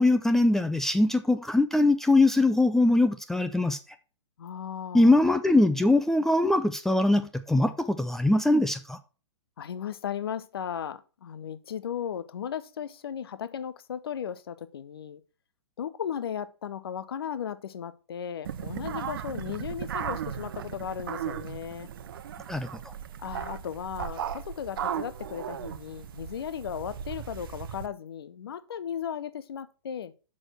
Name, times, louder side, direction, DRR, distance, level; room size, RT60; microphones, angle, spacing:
voice 1, 0.0-3.8 4.9-9.0 22.5-22.7, left 2 dB, 5° left, 0.4 m, -22 dB
voice 2, 4.4-5.2 9.6-15.2 15.8-21.9 23.2-30.1, left 8 dB, 55° left, 0.8 m, -36 dB
sound 1, 18.4-27.9, right 9 dB, 50° right, 0.7 m, -36 dB
6.2 x 6.2 x 6.1 m
figure-of-eight pair, 115°, 15 cm